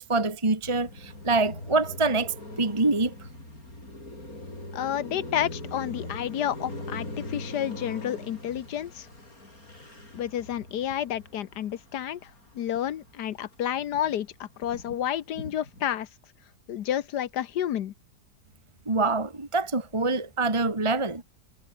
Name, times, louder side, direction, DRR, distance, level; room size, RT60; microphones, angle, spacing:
voice 1, 0.0-3.1 18.9-21.2, right 3 dB, 15° right, 1.8 m, -25 dB
Car passing by, 0.6-13.1 13.4-15.9, left 2 dB, 50° left, 8.5 m, -42 dB
voice 2, 4.7-9.1 10.1-12.3 12.5-16.1 16.7-17.9, left 10 dB, 70° left, 1.4 m, -30 dB
omnidirectional pair, 1.9 m